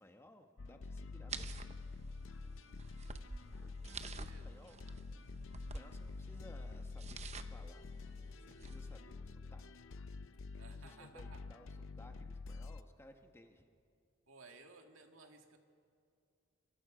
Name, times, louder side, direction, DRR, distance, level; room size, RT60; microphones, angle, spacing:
voice 1, 0.0-1.6 3.6-3.7 4.0-4.8 5.7-7.9 8.4-9.7 10.7-13.7, left 1 dB, 10° left, 5 dB, 1.2 m, -60 dB
sound 1, 0.6-12.8, left 3 dB, 70° left, 0.6 m, -48 dB
sound 2, 1.3-9.0, right 4 dB, 35° right, 0.8 m, -51 dB
voice 2, 3.5-4.5 10.6-11.5 14.3-15.6, right 3 dB, 85° right, 4 dB, 2.0 m, -59 dB
26.0 x 23.5 x 5.1 m, 2.4 s
head